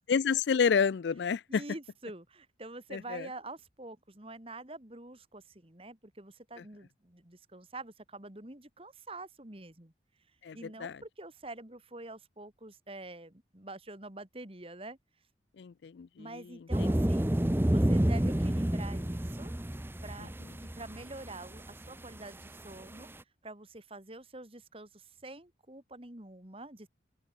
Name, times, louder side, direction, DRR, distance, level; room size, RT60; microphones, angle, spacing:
voice 1, 0.1-1.6 2.9-3.3 10.4-11.0 15.6-16.3 16.8-16.9 20.2-20.3, left 6 dB, 70° left, 0.4 m, -29 dB
voice 2, 1.5-9.9 10.5-15.0 16.2-17.3 17.7-19.5 20.0-23.1 23.4-26.9, right 2 dB, 30° right, 2.3 m, -46 dB
sound 1, 16.7-22.2 22.4-22.5 22.7-22.8 23.0-23.1, right 1 dB, 10° right, 0.7 m, -29 dB
open air
head